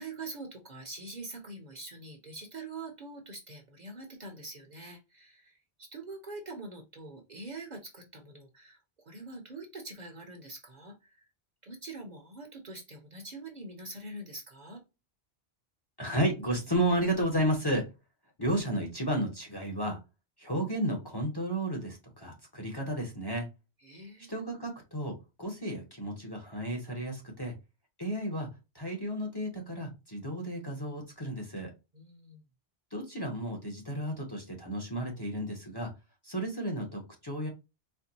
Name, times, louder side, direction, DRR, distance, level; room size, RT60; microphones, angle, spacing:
voice 1, 0.0-5.5 5.8-8.8 9.0-11.1 11.6-14.8 23.8-24.3 31.9-32.4, right 2 dB, 45° right, 2 dB, 0.9 m, -44 dB
voice 2, 16.0-17.9 18.4-20.0 20.4-23.5 24.3-27.5 28.0-28.5 28.7-31.7 32.9-35.9 36.2-37.5, right 1 dB, 25° left, 0 dB, 0.8 m, -32 dB
4.4 x 2.2 x 2.7 m, 0.26 s
omnidirectional pair, 1.1 m